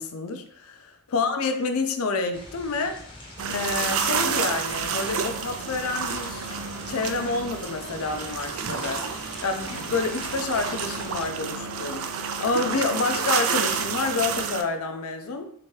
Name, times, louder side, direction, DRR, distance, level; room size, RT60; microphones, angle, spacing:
voice 1, 0.0-3.0 3.5-6.5 6.9-15.5, left 3 dB, 70° left, 7 dB, 0.5 m, -28 dB
sound 1, 2.3-11.3, left 1 dB, 25° left, 0.7 m, -43 dB
sound 2, 3.4-14.6, right 6 dB, 70° right, 0.4 m, -29 dB
3.4 x 2.9 x 3.1 m, 0.66 s
head